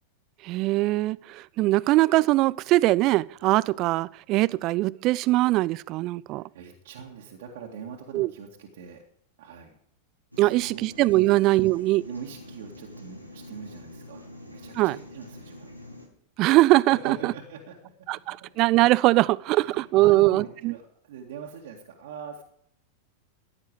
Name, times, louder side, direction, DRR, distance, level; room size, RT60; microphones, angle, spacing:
voice 1, 0.4-6.4 8.1-8.3 10.4-12.1 14.8-15.0 16.4-17.3 18.1-20.7, right 18 dB, 40° right, 22 dB, 0.5 m, -22 dB
voice 2, 6.3-9.0 9.4-9.8 10.4-10.9 11.2-11.4 12.1-15.7 16.9-18.5 19.5-22.4, right 6 dB, 55° right, -1 dB, 2.1 m, -42 dB
sound 1, 10.3-16.1, left 1 dB, 90° left, 2.5 m, -45 dB
16.0 x 10.5 x 4.8 m, 0.67 s
figure-of-eight pair, 90°, 0 cm